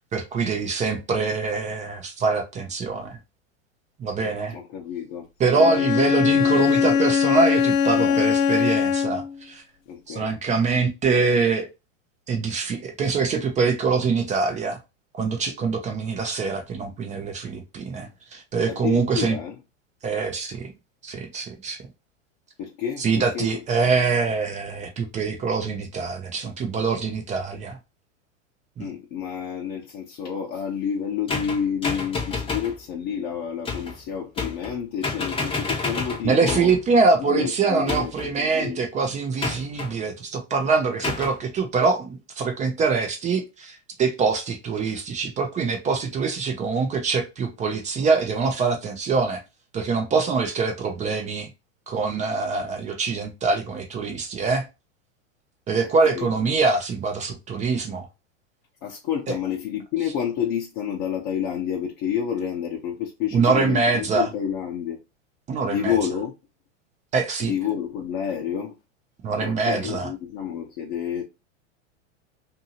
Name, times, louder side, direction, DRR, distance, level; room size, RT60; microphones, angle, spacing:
voice 1, 0.1-3.2 4.0-4.5 5.4-9.6 10.1-11.7 12.3-14.8 15.1-19.4 20.0-20.7 21.0-21.8 23.0-27.8 28.8-28.9 36.2-49.4 49.7-51.5 51.9-54.7 55.7-58.1 63.3-64.3 65.5-65.9 67.1-67.5 69.2-70.1, right 4 dB, 20° right, 0.5 m, -24 dB
voice 2, 4.5-7.1 8.0-8.2 9.9-10.4 18.7-19.5 22.6-23.6 28.8-36.7 37.2-38.8 56.0-56.3 58.8-65.0 65.6-66.3 67.4-68.8 69.4-71.2, left 8 dB, 45° left, 0.8 m, -29 dB
Bowed string instrument, 5.6-9.4, left 7 dB, 80° left, 0.5 m, -21 dB
sound 1, 31.3-32.8 33.7-34.0 34.4-34.8 35.0-36.8 37.9-38.4 39.4-39.9 41.0-41.4, left 3 dB, 15° left, 0.7 m, -29 dB
2.7 x 2.7 x 2.7 m
hypercardioid pair, 115°, 39 cm